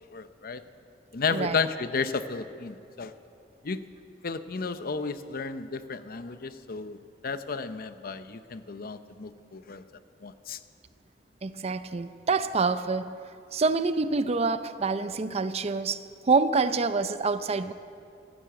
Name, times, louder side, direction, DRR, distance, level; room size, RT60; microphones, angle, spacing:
voice 1, 0.1-0.6 1.1-3.1 3.6-3.8 4.2-9.8 10.2-10.6, left 4 dB, 55° left, 11 dB, 0.7 m, -33 dB
voice 2, 11.4-13.2 13.5-16.0 16.2-17.7, right 4 dB, 35° right, 12 dB, 0.5 m, -26 dB
15.0 x 11.5 x 8.2 m, 2.5 s
head